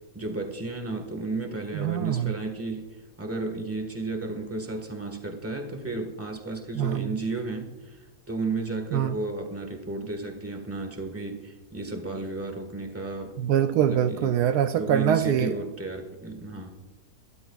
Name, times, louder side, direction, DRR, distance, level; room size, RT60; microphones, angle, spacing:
voice 1, 0.1-13.3 13.8-14.3 14.8-16.7, right 3 dB, 10° right, 4 dB, 1.4 m, -33 dB
voice 2, 1.7-2.3 6.7-7.2 8.9-9.2 13.4-15.6, right 9 dB, 75° right, 9 dB, 1.1 m, -24 dB
22.0 x 12.5 x 2.4 m, 1.3 s
omnidirectional pair, 1.8 m